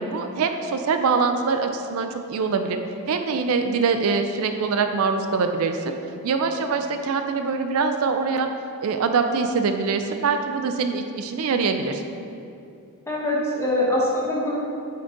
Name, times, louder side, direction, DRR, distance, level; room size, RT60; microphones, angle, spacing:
voice 1, 0.0-2.8 3.1-5.8 6.2-8.5 8.8-12.0, right 4 dB, 70° right, 6 dB, 0.4 m, -23 dB
voice 2, 13.1-14.6, left 1 dB, 10° left, -5 dB, 1.1 m, -23 dB
7.8 x 4.0 x 3.8 m, 2.6 s
head